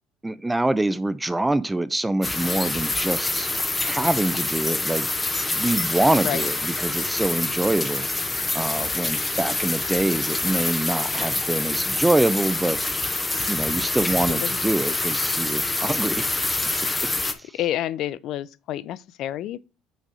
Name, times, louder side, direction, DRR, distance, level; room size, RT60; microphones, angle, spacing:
voice 1, 0.2-3.5 3.8-5.1 5.5-8.1 8.5-12.8 13.5-16.3 17.4-17.5, right 2 dB, 10° right, 0.3 m, -25 dB
sound 1, 2.2-17.3, left 2 dB, 15° left, 0.7 m, -26 dB
voice 2, 17.2-19.6, left 12 dB, 60° left, 0.4 m, -29 dB
6.3 x 4.0 x 4.8 m
cardioid pair, 125°, 0 cm